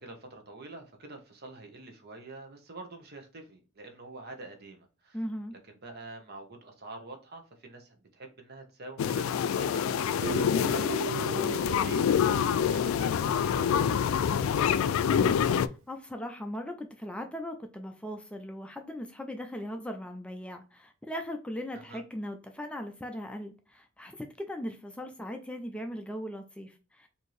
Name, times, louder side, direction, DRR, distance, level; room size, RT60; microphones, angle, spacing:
voice 1, 0.0-5.2 5.7-12.1 12.5-15.0 21.7-22.0, right 2 dB, 50° right, 0.9 m, -46 dB
voice 2, 5.1-5.6 11.3-11.7 15.5-27.1, equal, 5° left, 0.4 m, -39 dB
sound 1, 9.0-15.7, left 8 dB, 80° left, 0.3 m, -26 dB
Guitar, 10.2-13.5, right 6 dB, 85° right, 0.8 m, -39 dB
4.3 x 2.7 x 3.1 m
head